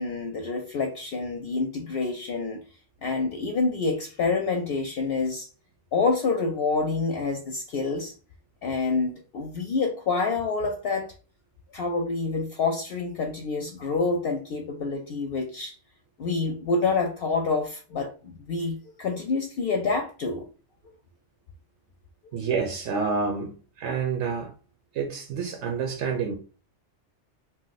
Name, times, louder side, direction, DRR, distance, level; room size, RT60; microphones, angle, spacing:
voice 1, 0.0-2.6 3.0-5.5 5.9-8.1 8.6-11.1 11.7-15.7 16.2-20.4, left 4 dB, 65° left, 0.7 m, -27 dB
voice 2, 22.3-24.5 24.9-26.3, right 5 dB, 80° right, 0.9 m, -28 dB
2.6 x 2.1 x 3.9 m
omnidirectional pair, 1.2 m